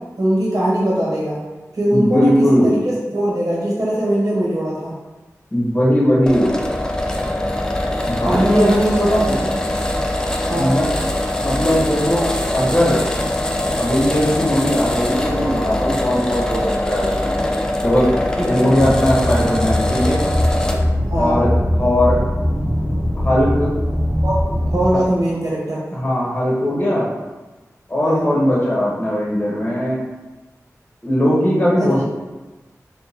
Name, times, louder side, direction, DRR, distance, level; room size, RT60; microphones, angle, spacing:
voice 1, 0.2-1.4 1.7-2.3 2.6-4.9 8.2-9.5 10.5-10.7 18.4-18.5 21.1-21.4 24.2-24.3 24.7-25.8 28.0-28.3 31.8-31.9, right 1 dB, 70° right, -6 dB, 1.1 m, -20 dB
voice 2, 1.9-2.8 5.5-6.6 8.0-9.4 10.5-10.8 11.4-12.3 12.5-13.0 13.8-17.4 17.8-18.1 18.4-20.2 21.2-21.5 21.8-22.2 23.2-23.7 25.9-27.1 27.9-30.0 31.0-32.0, equal, 25° left, -5 dB, 1.1 m, -18 dB
sound 1, 6.3-20.9, left 1 dB, 10° left, 0.4 m, -22 dB
sound 2, 18.8-25.0, equal, 30° right, 0.7 m, -21 dB
2.8 x 2.3 x 4.1 m, 1.1 s
wide cardioid pair, 65°, 6 cm